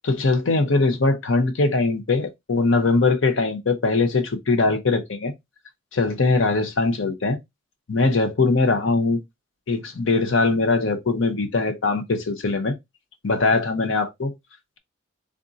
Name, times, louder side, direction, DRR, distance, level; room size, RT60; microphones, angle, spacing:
voice 1, 0.0-5.3 5.9-7.4 7.9-9.2 9.7-12.7 13.2-14.3, left 3 dB, 70° left, 0.8 m, -21 dB
3.6 x 2.6 x 3.8 m
head